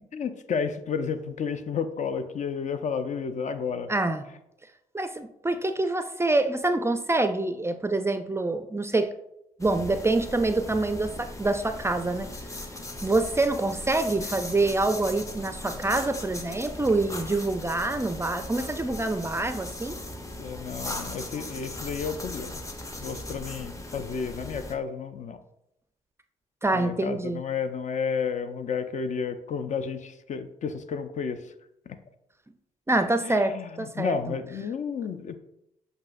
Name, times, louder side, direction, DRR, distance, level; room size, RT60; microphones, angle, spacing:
voice 1, 0.1-3.9 20.4-22.6 23.0-25.4 26.7-31.5 31.9-32.0 33.2-35.3, left 6 dB, 45° left, 10 dB, 0.5 m, -32 dB
voice 2, 3.9-4.3 4.9-9.1 9.6-12.3 13.0-20.0 26.6-27.4 32.9-34.2, right 2 dB, 15° right, 9 dB, 0.4 m, -26 dB
sound 1, 9.6-24.7, left 1 dB, 20° left, 0.7 m, -38 dB
7.4 x 2.6 x 2.5 m, 0.82 s
hypercardioid pair, 45°, 17 cm